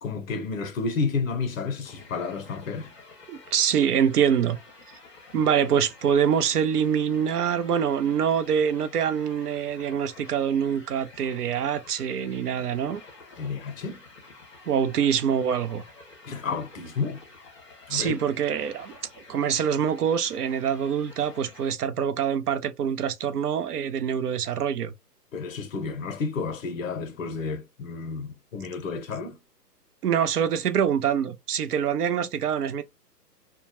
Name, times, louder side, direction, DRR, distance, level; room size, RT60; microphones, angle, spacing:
voice 1, 0.0-2.9 13.4-14.0 16.3-17.2 17.9-18.2 25.3-29.4, left 4 dB, 55° left, 0.7 m, -31 dB
sound 1, 1.8-21.7, left 3 dB, 5° left, 0.8 m, -49 dB
voice 2, 3.3-4.6 5.3-13.0 14.7-15.8 17.9-18.9 19.3-24.9 30.0-32.8, right 8 dB, 65° right, 0.6 m, -25 dB
2.2 x 2.1 x 2.9 m
hypercardioid pair, 155°, 50 cm